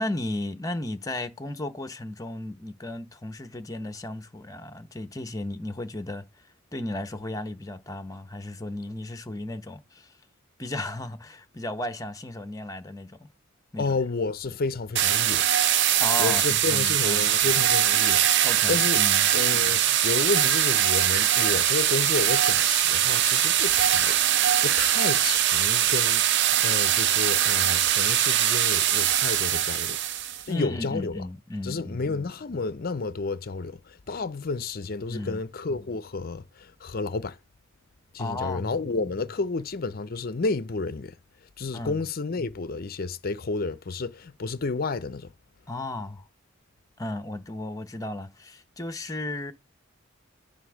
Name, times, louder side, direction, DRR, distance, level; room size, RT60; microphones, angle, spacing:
voice 1, 0.0-6.2 6.7-10.1 10.6-13.3 13.7-14.0 16.0-17.3 18.4-19.3 30.5-32.0 35.1-35.4 38.2-38.8 41.7-42.0 45.7-46.2 47.0-49.5, left 1 dB, 15° left, 0.9 m, -34 dB
voice 2, 13.8-15.5 16.2-18.3 18.7-19.0 19.3-30.0 30.5-31.2 31.6-37.4 38.1-41.1 41.6-45.3, left 3 dB, 45° left, 0.6 m, -31 dB
sound 1, 15.0-30.4, right 11 dB, 60° right, 0.5 m, -22 dB
9.2 x 3.5 x 6.2 m
head